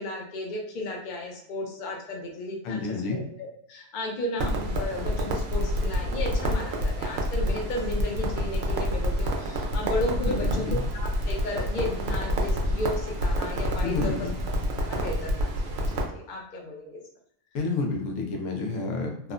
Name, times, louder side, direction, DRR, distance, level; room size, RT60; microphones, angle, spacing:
voice 1, 0.0-10.7 10.9-14.3 14.8-17.0, left 2 dB, 45° left, -1 dB, 0.7 m, -34 dB
voice 2, 2.6-3.2 10.2-10.8 13.8-14.3 17.5-19.3, left 3 dB, 85° left, 2 dB, 1.0 m, -30 dB
Crackle, 4.4-16.0, equal, 65° right, 0.7 m, -28 dB
2.8 x 2.1 x 2.4 m, 0.69 s
omnidirectional pair, 1.3 m